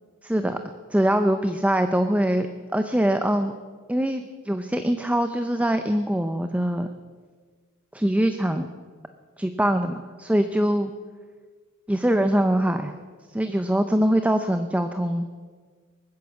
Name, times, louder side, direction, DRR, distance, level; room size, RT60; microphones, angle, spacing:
voice 1, 0.2-0.6 0.9-2.5 2.7-3.5 3.9-6.9 7.9-8.7 9.4-10.9 11.9-12.9 13.3-15.3, right 1 dB, 5° right, 8 dB, 0.5 m, -23 dB
21.0 x 9.5 x 7.2 m, 1.5 s
head